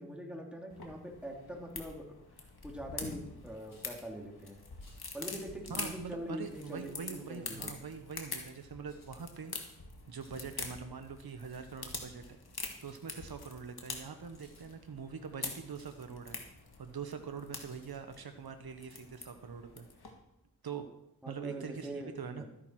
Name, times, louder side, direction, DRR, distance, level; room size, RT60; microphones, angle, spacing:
voice 1, 0.0-2.0 2.6-4.6 5.1-7.7 21.2-22.4, equal, 5° right, 0 dB, 2.7 m, -43 dB
sound 1, 0.7-20.1, left 4 dB, 80° left, 1.9 m, -46 dB
sound 2, 3.7-3.9 4.8-5.1 5.7-6.0 8.8-9.5 10.2-10.5 10.8-11.1 11.5-11.8 12.6-13.1 14.0-14.1 14.3-14.7 15.3-15.4 15.7-16.0 17.2-17.3 17.7-18.0, left 1 dB, 60° left, 5.0 m, -63 dB
voice 2, 5.7-9.5 10.1-12.4 12.8-16.4 16.8-19.9 20.6-20.9 21.3-22.4, right 6 dB, 75° right, 7 dB, 1.0 m, -43 dB
13.0 x 10.0 x 4.6 m, 0.86 s
wide cardioid pair, 50°, 38 cm